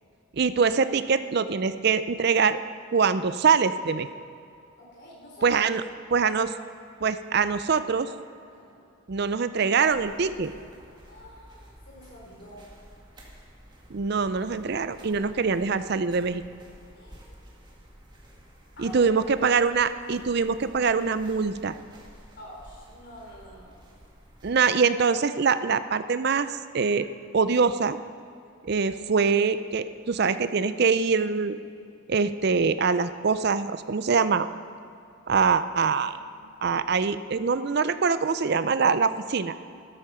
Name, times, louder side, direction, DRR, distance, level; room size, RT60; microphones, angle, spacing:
voice 1, 0.3-2.6 2.9-4.1 5.4-5.8 6.1-6.5 7.0-8.1 9.1-10.5 13.9-16.4 18.8-21.8 24.4-26.5 26.7-27.1 27.3-28.0 28.6-31.6 32.1-34.5 35.3-36.2 36.6-39.6, right 5 dB, 50° right, 12 dB, 0.5 m, -24 dB
voice 2, 4.8-5.6 6.1-6.2 8.5-8.9 11.0-12.6 16.9-17.4 18.8-19.1 22.4-23.8 36.2-36.5, equal, 50° left, -3 dB, 3.9 m, -47 dB
sound 1, 9.8-24.6, equal, 20° right, 1.9 m, -51 dB
14.0 x 12.5 x 5.7 m, 2.5 s
head